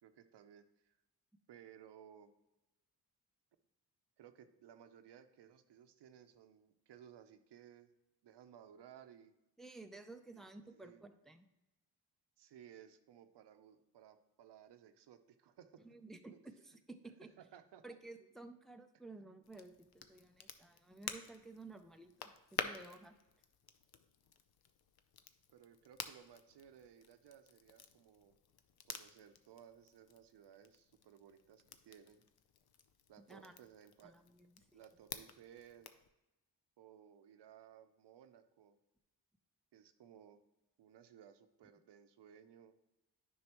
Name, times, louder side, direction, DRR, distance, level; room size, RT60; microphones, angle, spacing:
voice 1, 0.0-1.0 1.5-2.3 4.2-7.9 8.2-9.3 10.3-10.4 10.7-11.0 12.4-15.8 16.3-16.4 17.4-17.8 25.5-28.4 28.9-32.2 33.1-34.1 34.7-35.9 36.8-38.8 39.7-40.4 40.8-42.7, right 9 dB, 80° right, 9 dB, 0.7 m, -59 dB
voice 2, 9.6-11.5 15.8-17.3 17.8-23.2 33.3-33.5 34.0-34.8, right 2 dB, ahead, 6 dB, 0.5 m, -54 dB
Crackle, 19.4-36.1, left 8 dB, 65° left, 0.7 m, -51 dB
9.5 x 5.6 x 3.0 m, 0.98 s
cardioid pair, 85°, 41 cm